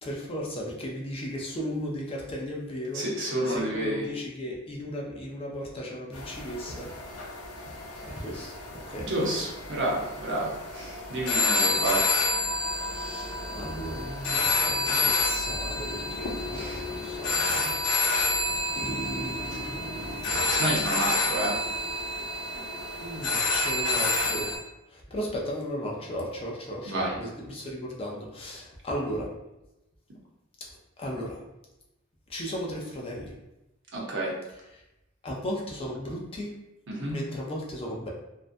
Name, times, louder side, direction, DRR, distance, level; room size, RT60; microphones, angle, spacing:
voice 1, 0.0-3.0 3.4-6.9 7.2-7.6 8.0-8.5 8.9-9.4 12.8-20.6 23.0-24.5 24.9-29.3 31.0-31.4 32.3-33.3 34.7-34.8 35.2-36.5 37.1-38.1, equal, 25° left, -2 dB, 0.4 m, -36 dB
voice 2, 2.9-4.1 9.0-12.0 16.5-16.8 20.5-21.6 22.5-22.6 26.9-27.1 33.9-34.3 36.9-37.2, right 1 dB, 55° right, -3 dB, 0.7 m, -30 dB
sound 1, 6.1-24.6, left 2 dB, 80° left, 0.6 m, -29 dB
2.5 x 2.1 x 2.5 m, 0.93 s
head